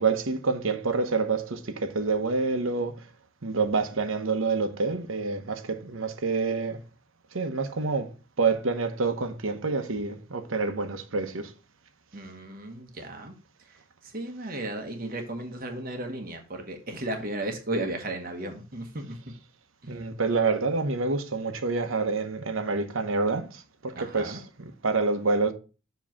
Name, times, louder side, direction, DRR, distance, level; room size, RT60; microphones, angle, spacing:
voice 1, 0.0-2.9 3.4-6.8 7.3-8.1 8.4-11.5 19.9-25.5, right 4 dB, 80° right, 1.0 m, -27 dB
voice 2, 12.1-13.3 14.0-19.2 23.9-24.4, right 1 dB, 45° right, 1.0 m, -34 dB
7.4 x 3.1 x 5.9 m
head